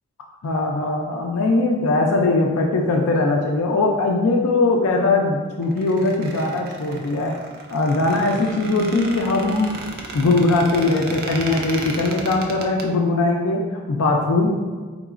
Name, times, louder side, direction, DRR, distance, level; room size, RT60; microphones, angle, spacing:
voice 1, 0.4-7.3 7.7-9.7 10.1-14.5, left 2 dB, 80° left, 1 dB, 0.4 m, -20 dB
Squeak, 5.6-12.8, right 3 dB, 45° right, 0.4 m, -34 dB
3.9 x 3.7 x 2.4 m, 1.5 s
head